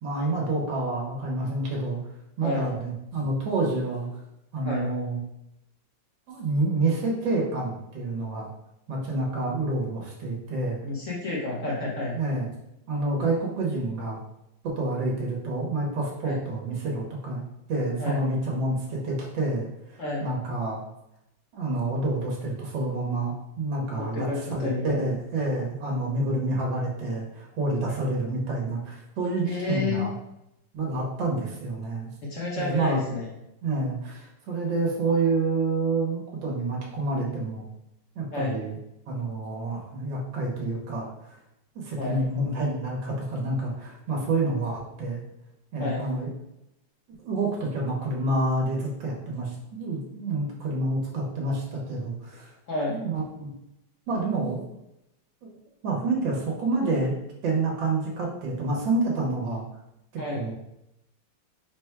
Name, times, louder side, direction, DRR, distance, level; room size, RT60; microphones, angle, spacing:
voice 1, 0.0-2.0 2.4-4.2 4.5-5.2 6.3-8.5 8.9-10.8 12.1-12.5 12.9-14.2 14.6-17.4 17.7-20.8 21.5-30.1 30.7-32.1 32.6-33.0 33.6-37.7 38.1-38.8 39.1-41.4 41.7-45.2 45.7-46.3 47.1-52.5 52.9-53.5 54.1-54.6 55.4-55.5 55.8-57.1 57.4-59.6 60.3-60.5, right 2 dB, 85° right, -2 dB, 1.7 m, -28 dB
voice 2, 2.4-2.7 4.6-4.9 9.5-9.6 10.8-12.2 16.2-16.4 18.0-18.2 20.0-20.3 23.9-25.1 29.4-30.1 32.3-33.3 38.3-38.6 42.0-42.2 45.8-46.1 52.7-53.0 60.2-60.4, left 2 dB, 50° left, -4 dB, 1.2 m, -30 dB
4.1 x 2.2 x 4.4 m, 0.84 s
omnidirectional pair, 2.0 m